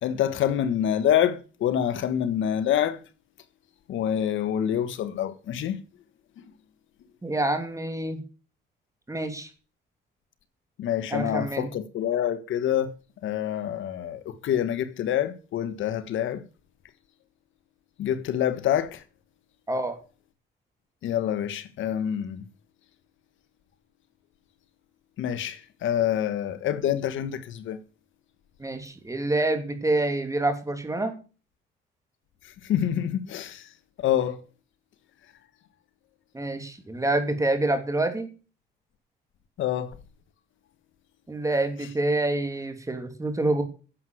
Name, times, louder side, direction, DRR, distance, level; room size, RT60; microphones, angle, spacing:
voice 1, 0.0-3.0 3.9-5.8 10.8-12.9 13.2-16.4 18.0-19.0 21.0-22.4 25.2-27.8 32.6-33.7 34.0-34.4 39.6-39.9, left 10 dB, 80° left, 1.4 m, -26 dB
voice 2, 7.2-8.2 9.1-9.5 11.1-11.7 19.7-20.0 28.6-31.1 36.3-38.3 41.3-43.6, right 2 dB, 15° right, 2.8 m, -27 dB
10.5 x 7.9 x 7.8 m
cardioid pair, 90°, 20 cm